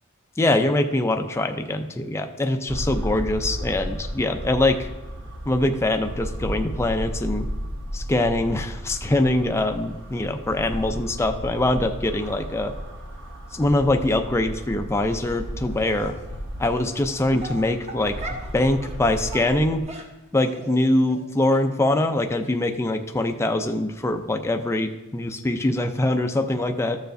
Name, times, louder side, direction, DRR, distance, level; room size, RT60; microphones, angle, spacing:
voice 1, 0.4-4.9 5.5-7.5 7.9-12.7 13.5-16.1 16.6-19.8 20.3-27.0, left 1 dB, 10° left, 5 dB, 0.4 m, -23 dB
sound 1, 2.7-19.8, equal, 60° right, 1.3 m, -34 dB
Dog, 15.0-15.4 16.0-16.1 16.9-17.0 17.4-18.5 18.8-19.0 19.3-20.8 21.1-21.2 21.5-21.6 21.9-22.1 22.4-22.5 22.9-23.0 23.2-23.3, right 1 dB, 30° right, 1.0 m, -39 dB
13.5 x 6.8 x 2.6 m, 1.0 s
head